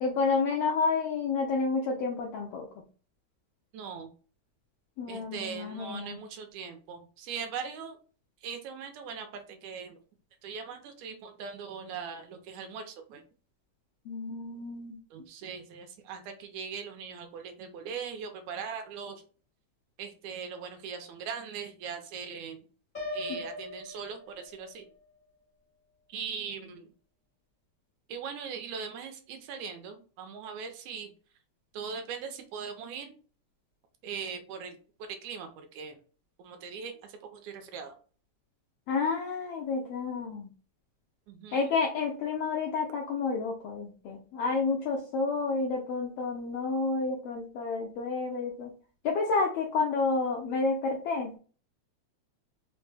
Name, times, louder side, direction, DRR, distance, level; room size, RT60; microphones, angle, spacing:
voice 1, 0.0-2.7 5.0-6.2 14.1-15.0 23.3-23.4 38.9-40.5 41.5-48.7 49.0-51.4, left 4 dB, 80° left, 1 dB, 1.3 m, -30 dB
voice 2, 3.7-4.1 5.1-8.0 8.4-10.0 10.4-13.2 15.1-19.2 20.0-22.6 23.1-24.8 26.1-26.9 28.1-31.1 31.7-33.2 34.0-36.0 36.4-37.9 41.3-41.8, right 6 dB, 80° right, 6 dB, 2.0 m, -40 dB
Piano, 22.9-24.9, left 1 dB, 50° left, 0.5 m, -39 dB
5.0 x 2.1 x 3.2 m, 0.39 s
omnidirectional pair, 3.4 m